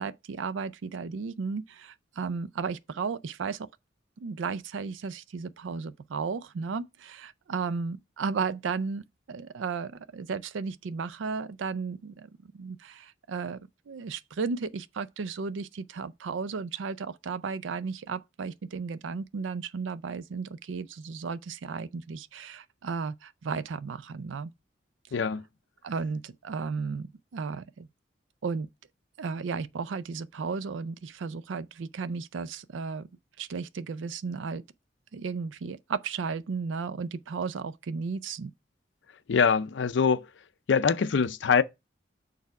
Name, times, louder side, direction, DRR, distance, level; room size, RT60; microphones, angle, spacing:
voice 1, 0.0-3.7 4.2-13.6 13.9-24.5 25.8-27.9 28.4-28.7 29.2-33.1 33.4-34.6 35.1-38.5, right 5 dB, 85° right, 0.4 m, -34 dB
voice 2, 25.1-25.4 39.3-40.3 40.7-41.6, left 6 dB, 75° left, 0.5 m, -23 dB
6.6 x 3.4 x 4.6 m
head